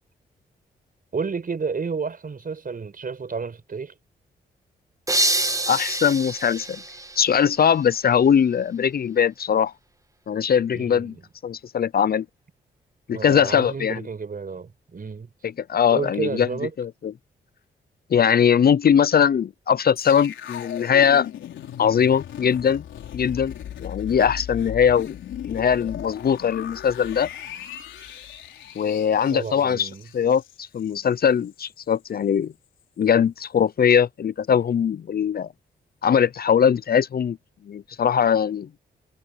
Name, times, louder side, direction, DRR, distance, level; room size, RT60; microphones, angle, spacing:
voice 1, 1.1-3.9 10.7-11.2 13.1-15.3 15.9-16.7 29.3-30.1, right 5 dB, 50° right, 6.1 m, -31 dB
sound 1, 5.1-7.8, right 2 dB, 15° right, 2.0 m, -26 dB
voice 2, 5.7-6.8 7.2-9.7 10.3-11.1 11.4-12.3 13.1-14.0 15.7-16.5 16.8-17.1 18.1-21.3 21.8-22.8 23.1-23.5 23.8-25.2 25.4-27.3 28.8-32.5 33.0-35.5 36.0-37.4 37.7-38.7, left 8 dB, 55° left, 0.7 m, -21 dB
sound 2, 20.0-31.1 31.5-31.6, left 10 dB, 85° left, 4.3 m, -37 dB
supercardioid pair, 55°, 19 cm